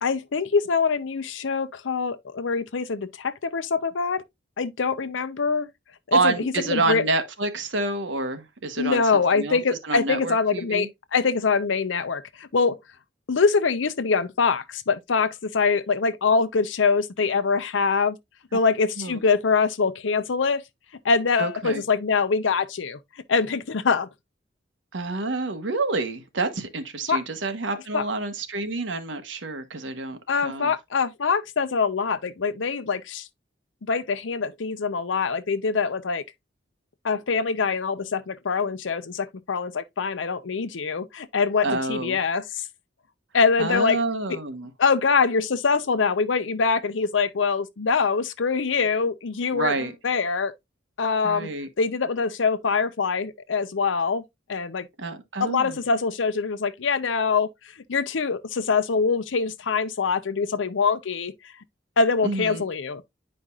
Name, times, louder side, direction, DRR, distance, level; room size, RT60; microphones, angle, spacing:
voice 1, 0.0-4.2 4.6-5.7 6.1-7.0 8.8-12.8 13.3-18.2 18.5-20.6 21.0-23.0 23.3-24.1 27.1-27.2 27.9-28.0 30.3-33.3 33.9-36.2 37.0-42.7 43.3-44.0 44.3-44.4 44.8-49.7 50.0-50.5 51.0-51.5 51.8-54.2 54.5-54.9 55.4-57.5 57.9-61.3 62.0-63.0, left 5 dB, 85° left, 0.6 m, -24 dB
voice 2, 6.1-10.9 19.0-19.2 21.4-21.8 24.9-30.7 41.6-42.2 43.6-44.7 49.5-49.9 51.2-51.7 55.0-55.8 62.2-62.6, right 3 dB, 80° right, 1.2 m, -28 dB
9.7 x 5.1 x 2.4 m
head